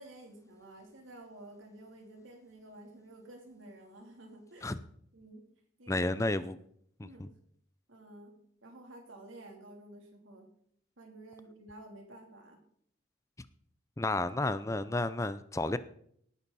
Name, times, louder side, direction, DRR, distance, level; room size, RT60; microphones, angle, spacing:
voice 1, 0.0-4.8 5.1-5.4 5.8-6.1 7.0-7.2 7.9-10.5 11.0-12.6, right 1 dB, 85° right, 3.3 m, -52 dB
voice 2, 5.9-6.6 7.0-7.3 14.0-15.8, left 2 dB, 15° left, 0.5 m, -31 dB
18.5 x 10.0 x 4.2 m
head